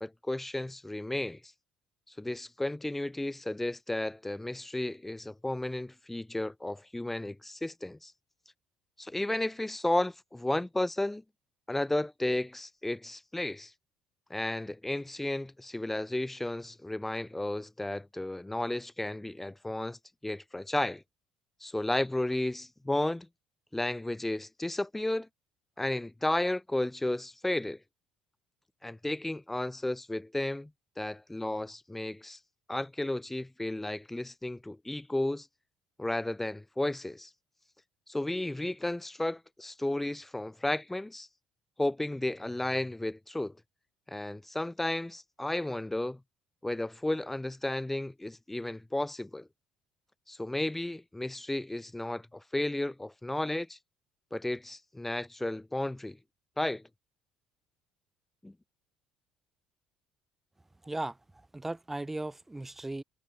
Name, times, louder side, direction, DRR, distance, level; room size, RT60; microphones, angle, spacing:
voice 1, 0.0-1.4 2.2-8.1 9.0-11.2 11.7-13.7 14.3-21.0 21.6-23.3 23.7-25.3 25.8-27.8 28.8-30.7 31.0-32.4 32.7-35.5 36.0-37.3 38.1-41.3 41.8-43.6 44.1-46.2 46.6-49.5 50.3-53.8 54.3-56.2 56.6-56.8 58.4-58.5, left 1 dB, 10° left, 1.1 m, -33 dB
voice 2, 60.8-63.0, right 2 dB, 10° right, 0.4 m, -37 dB
hypercardioid pair, 65°, 2 cm